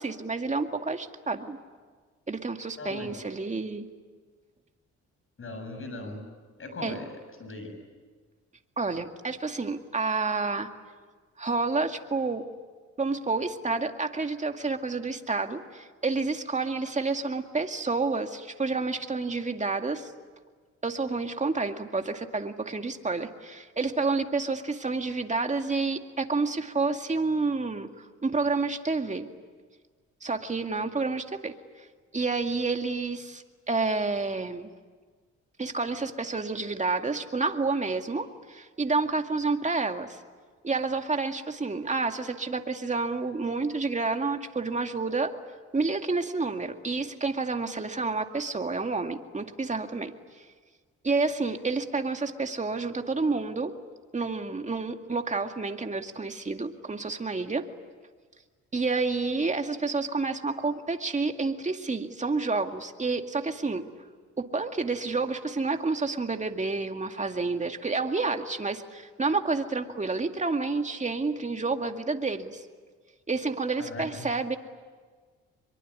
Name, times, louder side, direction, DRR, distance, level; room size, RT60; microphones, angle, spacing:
voice 1, 0.0-1.6 2.3-3.9 6.8-7.0 8.8-10.7 11.4-12.4 13.0-20.1 20.8-29.3 30.2-31.9 32.1-34.7 35.6-40.2 40.6-45.3 45.7-50.4 51.0-53.7 54.1-57.7 58.7-63.8 64.4-72.7 73.3-74.6, right 3 dB, 25° right, 5 dB, 2.2 m, -29 dB
voice 2, 2.8-3.1 5.4-6.2 6.6-7.1 7.4-7.7 73.8-74.3, left 2 dB, 45° left, 7 dB, 7.5 m, -38 dB
24.0 x 23.0 x 9.8 m, 1.5 s
cardioid pair, 80°, 29 cm